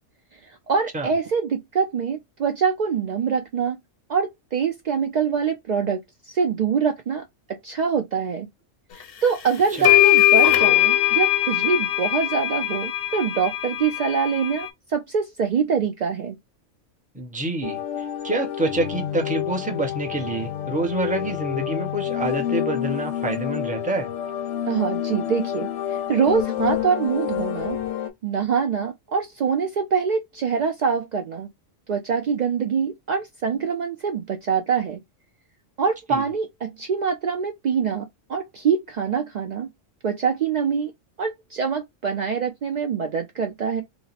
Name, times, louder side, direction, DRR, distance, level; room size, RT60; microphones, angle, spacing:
voice 1, 0.7-3.8 4.1-6.0 6.3-8.5 9.2-16.4 24.7-27.8 28.2-31.5 31.9-35.0 35.8-39.7 40.0-40.9 41.2-43.8, right 6 dB, 80° right, 0.4 m, -24 dB
sound 1, 9.2-9.3 9.8-14.7, left 16 dB, 60° left, 0.7 m, -20 dB
voice 2, 17.1-24.1 36.1-36.2, right 2 dB, 10° right, 0.5 m, -27 dB
sound 2, 17.6-28.1, left 11 dB, 85° left, 1.0 m, -28 dB
2.9 x 2.1 x 3.9 m
omnidirectional pair, 1.3 m